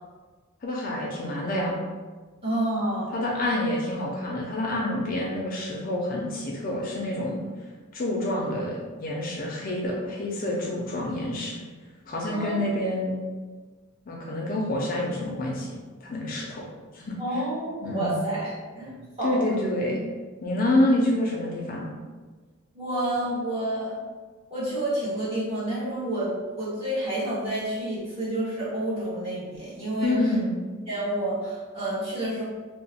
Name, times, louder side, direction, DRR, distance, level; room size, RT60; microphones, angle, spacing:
voice 1, 0.6-1.8 3.1-7.4 7.9-11.6 12.1-13.2 14.1-15.7 16.0-16.7 16.9-17.2 17.8-18.2 19.2-20.0 20.4-21.9 30.0-30.6, left 1 dB, 40° left, -2 dB, 0.4 m, -27 dB
voice 2, 2.4-3.1 12.2-12.6 17.2-19.6 22.7-24.0 24.5-30.1 30.9-32.4, right 1 dB, 30° right, -10 dB, 1.3 m, -29 dB
2.9 x 2.0 x 4.1 m, 1.4 s
head